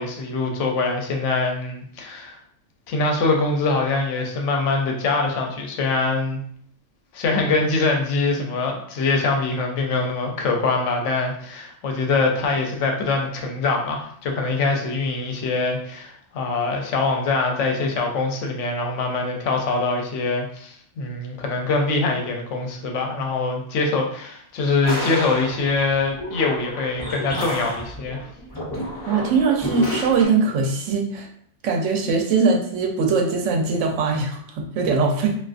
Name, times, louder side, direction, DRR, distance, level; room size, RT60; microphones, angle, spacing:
voice 1, 0.0-2.4 2.9-6.4 7.1-28.3, left 3 dB, 75° left, 2 dB, 0.9 m, -23 dB
sound 1, 24.8-30.2, equal, 30° left, 0.5 m, -30 dB
voice 2, 29.1-31.3 31.6-35.4, right 4 dB, 80° right, 2 dB, 0.9 m, -21 dB
2.4 x 2.3 x 2.4 m, 0.64 s
omnidirectional pair, 1.3 m